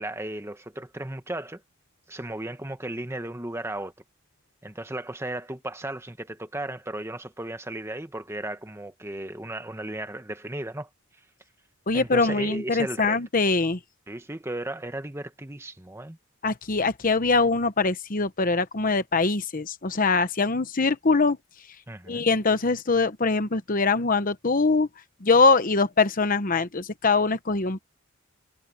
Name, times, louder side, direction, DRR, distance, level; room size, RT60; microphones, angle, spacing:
voice 1, 0.0-1.6 2.1-3.9 4.6-10.9 11.9-13.2 14.1-16.2 21.9-22.2, right 1 dB, 10° right, 1.2 m, -35 dB
voice 2, 11.9-13.8 16.4-21.4 22.1-24.9 25.2-27.8, left 3 dB, 40° left, 1.0 m, -23 dB
head